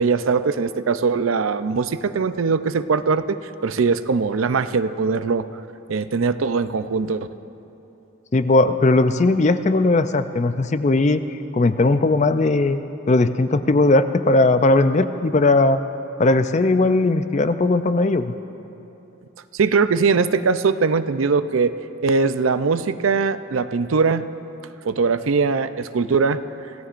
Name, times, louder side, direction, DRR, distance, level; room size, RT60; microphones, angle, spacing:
voice 1, 0.0-3.4 3.6-5.5 5.9-7.3 19.5-21.7 22.0-24.3 24.8-26.4, right 4 dB, 85° right, 12 dB, 0.5 m, -21 dB
voice 2, 8.3-11.2 11.5-12.8 13.1-15.8 16.2-18.3, left 2 dB, 35° left, 11 dB, 0.4 m, -18 dB
26.0 x 17.5 x 2.6 m, 2.9 s
head